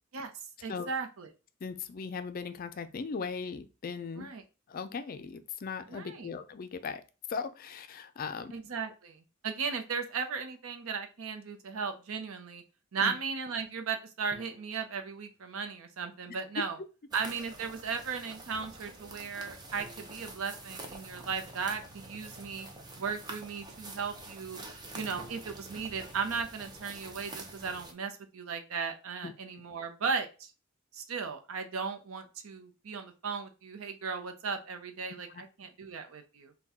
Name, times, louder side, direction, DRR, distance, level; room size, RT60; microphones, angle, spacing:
voice 1, 0.6-1.3 4.2-4.4 5.9-6.3 8.5-12.6 12.9-16.8 17.1-22.7 23.0-24.6 24.9-30.5 30.9-36.5, right 5 dB, 75° right, 6 dB, 0.6 m, -36 dB
voice 2, 1.6-4.3 4.7-7.0 7.3-8.5 13.0-13.2 29.2-29.3 35.3-35.4, left 5 dB, 45° left, 10 dB, 0.4 m, -38 dB
sound 1, 14.3-15.9 19.8-21.7 25.1-27.4, equal, ahead, 0.9 m, -57 dB
sound 2, 17.1-27.9, right 2 dB, 20° right, 0.6 m, -47 dB
4.2 x 2.2 x 3.6 m, 0.32 s
head